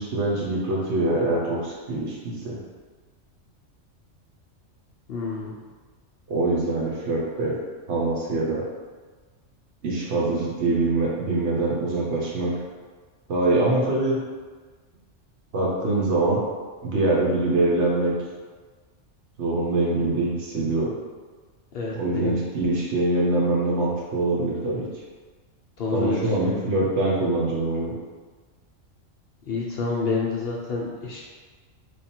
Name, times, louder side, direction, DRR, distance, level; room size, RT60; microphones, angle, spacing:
voice 1, 0.0-2.6 6.3-7.6 7.9-8.6 9.8-12.5 13.3-14.2 15.5-16.4 16.8-18.1 19.4-20.9 21.9-24.9 25.9-27.9, right 2 dB, 65° right, -4 dB, 1.1 m, -24 dB
voice 2, 5.1-5.6 21.7-22.4 25.8-26.3 29.5-31.2, left 4 dB, 60° left, -4 dB, 0.7 m, -28 dB
3.3 x 2.3 x 4.3 m, 1.4 s
omnidirectional pair, 1.3 m